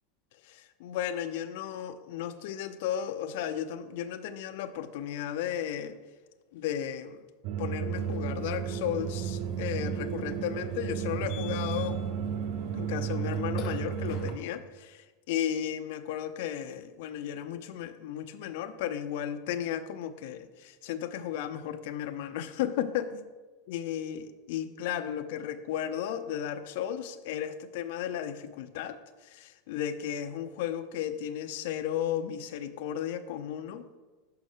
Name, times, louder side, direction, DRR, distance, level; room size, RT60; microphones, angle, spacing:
voice 1, 0.4-6.0 6.5-7.2 7.6-12.0 12.7-23.2 23.7-34.0, left 10 dB, 65° left, 7 dB, 0.5 m, -34 dB
sound 1, 7.4-14.4, right 8 dB, 50° right, 0.4 m, -33 dB
Burping eructation, 8.0-14.3, left 4 dB, 40° left, 1.0 m, -45 dB
6.2 x 5.7 x 6.5 m, 1.3 s
supercardioid pair, 155°, 0 cm